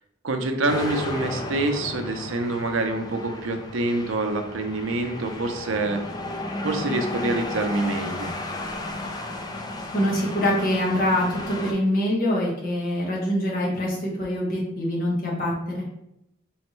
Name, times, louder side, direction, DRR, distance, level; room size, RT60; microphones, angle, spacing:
voice 1, 0.2-6.0 6.6-8.3, right 2 dB, 75° right, 6 dB, 0.6 m, -26 dB
sound 1, 0.7-11.7, left 2 dB, 20° left, 0.4 m, -33 dB
voice 2, 9.9-15.8, left 1 dB, 45° left, -4 dB, 1.2 m, -24 dB
4.3 x 3.1 x 3.1 m, 0.82 s
head